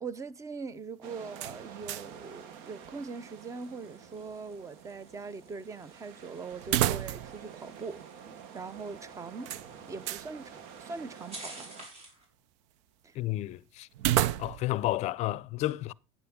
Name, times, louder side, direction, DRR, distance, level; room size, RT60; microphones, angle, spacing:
voice 1, 0.0-8.0 8.5-9.5 9.9-11.7 13.0-13.2, right 4 dB, 20° right, 0.7 m, -41 dB
sound 1, 1.0-11.9, right 7 dB, 70° right, 1.1 m, -49 dB
sound 2, 1.3-2.2 2.5-2.6 6.6-7.5 7.8-7.9 9.5-10.3 13.9-14.8, right 13 dB, 85° right, 0.5 m, -30 dB
sound 3, 1.7-12.3, right 2 dB, 45° right, 5.3 m, -53 dB
voice 2, 13.2-13.9 14.4-15.9, left 16 dB, 50° left, 0.5 m, -31 dB
11.5 x 9.1 x 3.6 m
supercardioid pair, 130°, 15 cm